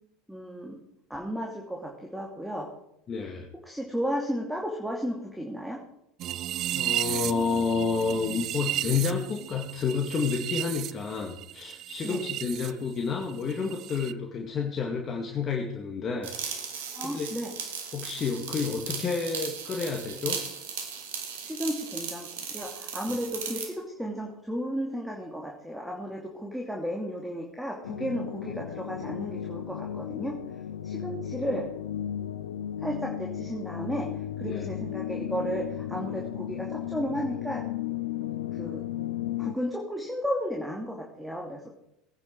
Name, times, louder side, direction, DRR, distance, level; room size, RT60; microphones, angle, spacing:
voice 1, 0.3-0.8 1.1-2.7 3.6-5.8 12.0-12.2 16.9-17.5 21.4-30.4 30.8-31.7 32.8-37.6 38.5-38.8 39.4-41.6, equal, ahead, 0 dB, 2.7 m, -33 dB
voice 2, 3.1-3.5 6.7-16.6 17.0-17.3 17.9-20.4 23.1-23.2 34.4-34.7, left 5 dB, 35° left, 2 dB, 2.1 m, -30 dB
sound 1, 6.2-12.7 13.0-14.1, right 13 dB, 50° right, 0.6 m, -34 dB
sound 2, 16.2-23.7, right 7 dB, 75° right, 2.3 m, -37 dB
sound 3, 27.8-39.5, left 11 dB, 75° left, 0.7 m, -35 dB
19.5 x 9.6 x 4.7 m, 0.79 s
figure-of-eight pair, 75°, 0 cm